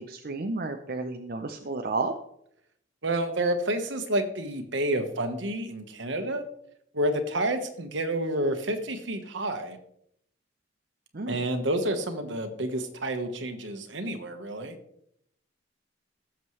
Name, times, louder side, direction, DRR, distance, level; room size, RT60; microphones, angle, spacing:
voice 1, 0.0-2.1 11.1-11.4, right 3 dB, 50° right, 4 dB, 0.7 m, -32 dB
voice 2, 3.0-6.4 6.9-9.8 11.3-14.7, right 1 dB, 70° right, 7 dB, 1.3 m, -29 dB
16.5 x 7.4 x 3.2 m, 0.72 s
head